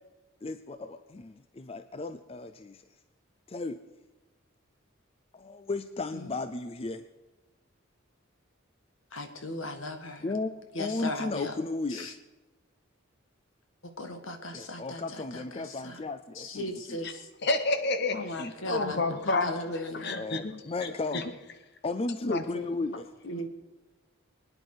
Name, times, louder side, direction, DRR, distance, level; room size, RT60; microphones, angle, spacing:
voice 1, 0.4-2.8 3.5-3.8 5.3-7.0 10.2-12.1 14.5-16.7 18.4-18.5 20.1-21.3 21.8-23.1, left 3 dB, 30° left, 11 dB, 0.5 m, -35 dB
voice 2, 9.1-10.3 10.7-11.5 11.9-12.1 13.8-16.0 16.3-17.3 18.1-20.2 23.2-23.5, left 1 dB, 75° left, 7 dB, 1.7 m, -37 dB
voice 3, 17.4-19.5 19.9-21.2 22.3-22.7, left 3 dB, 55° left, 9 dB, 1.1 m, -30 dB
24.0 x 9.7 x 4.9 m, 1.2 s
head